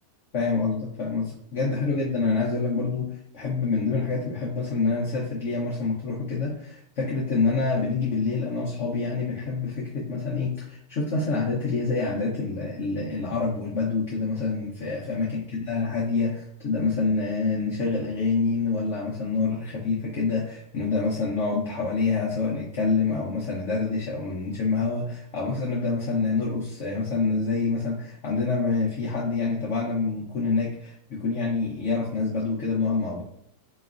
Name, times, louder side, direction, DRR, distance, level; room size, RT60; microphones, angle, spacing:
voice 1, 0.3-33.2, left 4 dB, 60° left, -4 dB, 0.9 m, -27 dB
4.1 x 3.0 x 2.4 m, 0.70 s
omnidirectional pair, 1.8 m